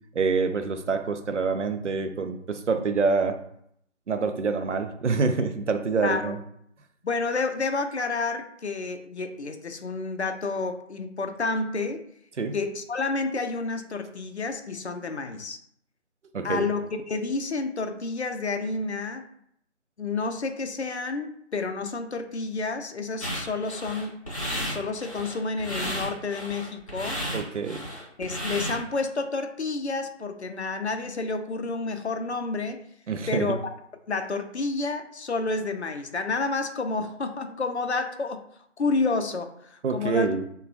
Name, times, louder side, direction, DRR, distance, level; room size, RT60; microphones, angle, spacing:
voice 1, 0.1-3.4 4.1-6.4 12.4-12.6 16.3-16.7 27.3-27.8 33.1-33.6 39.8-40.4, right 4 dB, 70° right, 7 dB, 0.5 m, -26 dB
voice 2, 6.0-6.3 7.0-12.1 12.5-15.6 16.4-19.3 20.0-24.2 24.7-27.2 28.2-32.9 33.3-33.6 34.1-38.4 38.8-40.3, left 3 dB, 60° left, 6 dB, 0.5 m, -30 dB
sound 1, 23.2-29.0, equal, 25° left, 0.8 m, -33 dB
3.0 x 2.2 x 2.5 m, 0.70 s
figure-of-eight pair, 165°, 38 cm